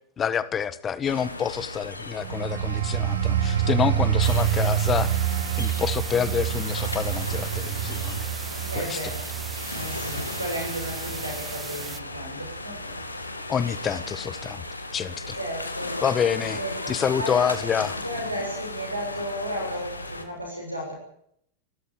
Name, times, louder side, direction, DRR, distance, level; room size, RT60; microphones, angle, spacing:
voice 1, 0.2-5.1 5.6-8.3 8.7-9.0 13.5-14.7 14.9-15.3 16.0-16.6 16.9-18.0, left 7 dB, 25° left, 15 dB, 1.6 m, -27 dB
sound 1, 1.0-20.2, left 2 dB, 80° left, 2.5 m, -36 dB
sound 2, 2.2-12.6 13.0-13.2, right 10 dB, 60° right, 1.3 m, -27 dB
sound 3, 4.2-12.0, right 5 dB, 15° right, 1.0 m, -38 dB
voice 2, 8.7-9.3 9.7-12.9 15.3-16.0 16.3-16.9 17.2-17.5 18.0-20.9, equal, 85° right, 0 dB, 7.2 m, -34 dB
27.5 x 13.5 x 8.9 m, 0.71 s
figure-of-eight pair, 90°, 0 cm